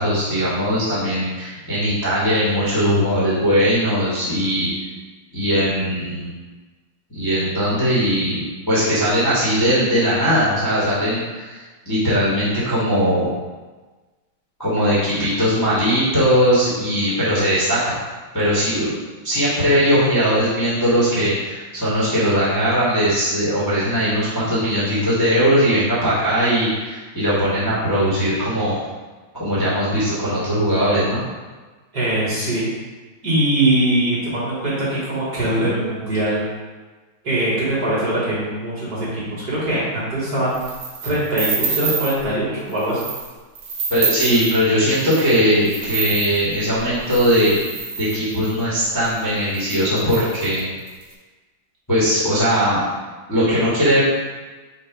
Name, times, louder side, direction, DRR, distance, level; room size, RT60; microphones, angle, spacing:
voice 1, 0.0-4.7 5.3-6.3 7.1-13.3 14.6-17.9 18.3-18.9 19.2-28.8 29.3-31.2 43.9-47.6 48.0-50.7 51.9-52.8 53.3-54.0, equal, 15° left, -8 dB, 0.8 m, -19 dB
voice 2, 31.9-32.7 33.2-36.4 37.2-40.6 41.0-43.0, right 1 dB, 50° right, -8 dB, 1.8 m, -22 dB
sound 1, 40.5-42.2 42.7-43.3 43.6-48.6 49.2-49.3 49.5-51.0, right 5 dB, 80° right, 1.8 m, -28 dB
5.4 x 2.0 x 4.5 m, 1.3 s
omnidirectional pair, 2.4 m